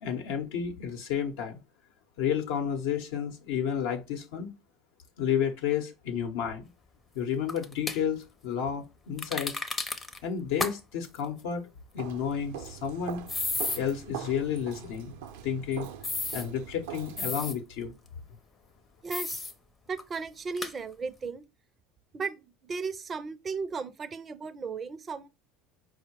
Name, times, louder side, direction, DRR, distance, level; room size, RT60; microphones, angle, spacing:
voice 1, 0.0-1.6 2.2-4.5 5.2-6.6 7.1-9.5 10.2-11.6 11.9-13.2 13.8-15.1 15.4-15.9 16.3-17.9, left 8 dB, 80° left, 0.7 m, -31 dB
sound 1, 7.5-8.0 9.2-10.2 10.6-10.7 11.0-11.2 13.3-13.8 16.0-16.4 17.2-17.5 19.1-19.5 20.0-20.1 20.6-20.7, left 3 dB, 20° left, 0.5 m, -32 dB
Walk footsteps, 12.0-17.5, right 9 dB, 80° right, 0.5 m, -42 dB
voice 2, 19.0-19.4 19.9-21.5 22.1-25.3, right 5 dB, 30° right, 0.4 m, -35 dB
4.6 x 2.1 x 4.4 m
supercardioid pair, 110°, 0 cm